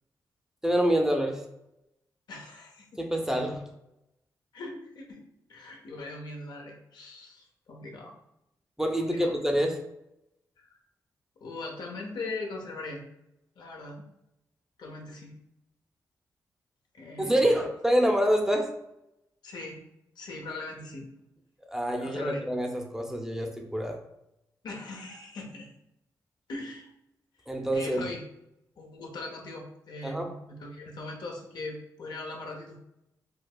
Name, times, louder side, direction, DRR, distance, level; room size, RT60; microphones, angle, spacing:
voice 1, 0.6-1.4 3.0-3.6 8.8-9.8 17.2-18.7 21.7-24.0 27.5-28.1 30.0-30.3, equal, 5° right, 3 dB, 0.6 m, -26 dB
voice 2, 2.3-3.0 4.5-5.2 5.5-8.1 9.0-9.3 10.6-10.7 11.4-13.0 13.6-14.0 14.8-15.3 16.9-17.5 19.4-19.8 20.2-21.1 22.0-22.4 24.6-25.7 26.5-26.9 27.7-28.2 28.8-32.9, left 2 dB, 75° left, 0 dB, 0.8 m, -40 dB
4.6 x 2.3 x 2.3 m, 0.85 s
cardioid pair, 65°, 7 cm